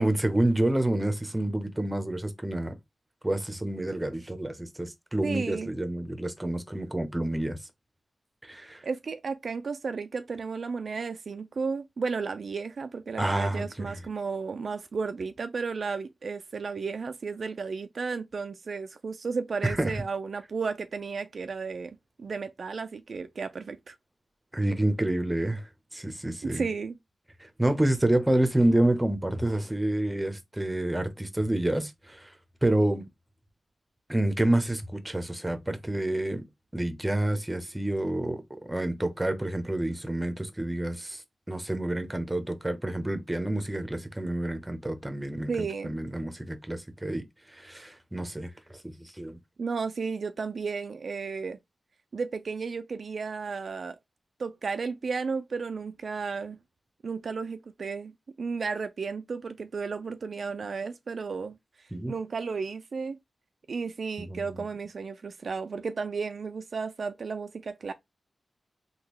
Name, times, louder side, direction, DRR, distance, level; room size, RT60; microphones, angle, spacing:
voice 1, 0.0-2.7 3.2-7.6 8.4-8.9 13.2-14.0 19.6-20.0 24.5-25.6 25.9-26.6 27.4-32.3 32.6-33.1 34.1-36.4 36.7-41.2 41.5-47.2 47.6-48.5 49.2-49.4 61.9-62.1 64.2-64.7, right 1 dB, 15° right, 0.7 m, -28 dB
voice 2, 5.2-5.7 8.8-24.0 26.4-27.0 45.5-46.0 49.6-51.6 52.1-54.0 54.4-56.6 57.0-61.6 62.1-63.2 63.7-67.9, right 5 dB, 70° right, 0.3 m, -33 dB
3.5 x 2.3 x 3.0 m
cardioid pair, 70°, 0 cm